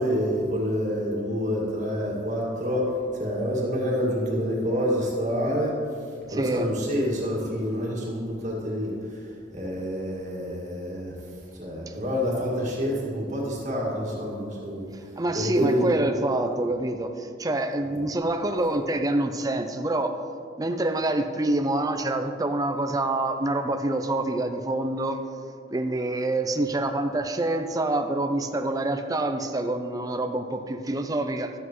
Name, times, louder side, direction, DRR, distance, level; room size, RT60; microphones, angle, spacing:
voice 1, 0.0-2.9 3.2-5.8 6.3-9.2 9.5-11.1 11.6-14.8 15.3-15.9, equal, 40° right, -4 dB, 1.9 m, -27 dB
voice 2, 6.3-6.7 11.9-12.0 15.2-20.1 20.6-25.2 25.7-31.5, right 2 dB, 20° right, 6 dB, 0.4 m, -26 dB
13.0 x 8.0 x 3.1 m, 2.4 s
head